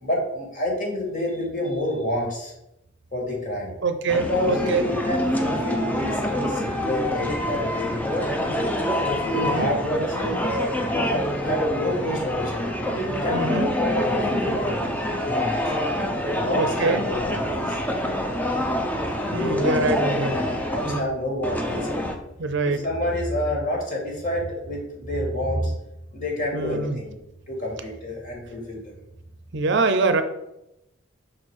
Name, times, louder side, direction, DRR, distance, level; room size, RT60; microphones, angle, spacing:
voice 1, 0.0-2.5 3.1-3.7 4.3-8.5 9.1-12.7 13.1-15.6 16.2-17.8 19.3-22.1 22.6-25.7 26.1-27.2 27.5-28.9, left 1 dB, 40° left, -1 dB, 2.1 m, -28 dB
voice 2, 3.8-4.9 9.3-9.7 13.3-13.7 16.6-17.0 19.3-20.3 20.8-21.1 22.4-22.9 26.5-27.0 29.5-30.2, right 3 dB, 60° right, 9 dB, 0.6 m, -24 dB
sound 1, 4.1-21.0 21.4-22.2, left 1 dB, 10° left, 0.6 m, -26 dB
6.0 x 4.4 x 4.8 m, 0.86 s
head